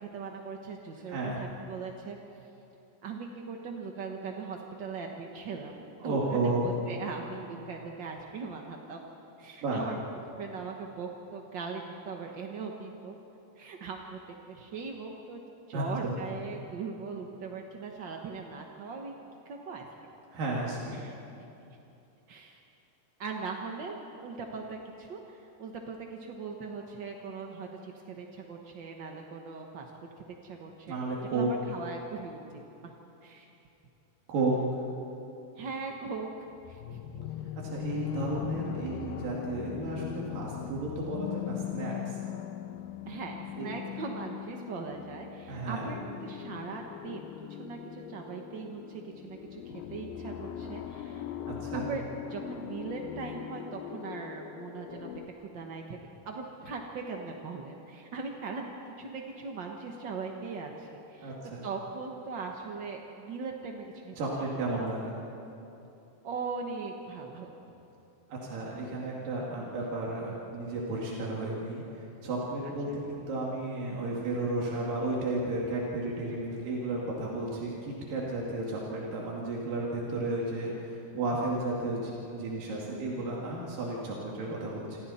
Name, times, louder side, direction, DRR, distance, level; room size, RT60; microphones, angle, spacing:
voice 1, 0.0-2.2 3.0-5.7 6.0-9.0 9.4-10.0 10.4-13.2 13.6-14.2 14.4-15.4 15.7-19.9 20.9-21.2 22.3-22.6 23.2-29.9 30.4-31.0 31.3-32.4 32.8-32.9 33.2-33.5 35.6-36.3 36.7-37.0 43.1-51.3 51.7-52.0 52.3-55.1 55.4-56.0 56.2-61.4 61.6-64.1 64.5-64.9 66.2-67.5 71.1-71.2 72.6-73.0 82.6-83.5, right 4 dB, 55° right, 1 dB, 1.2 m, -40 dB
voice 2, 1.1-1.4 6.0-6.7 9.6-9.9 15.7-16.1 20.3-21.1 30.9-31.5 34.3-34.5 37.6-42.2 43.6-43.7 45.5-45.9 51.5-51.9 61.2-61.6 64.2-65.1 68.3-85.0, right 2 dB, 90° right, -4 dB, 4.1 m, -33 dB
sound 1, 36.6-55.3, left 10 dB, 85° left, 2.5 m, -40 dB
28.0 x 26.0 x 4.3 m, 2.9 s
omnidirectional pair, 3.8 m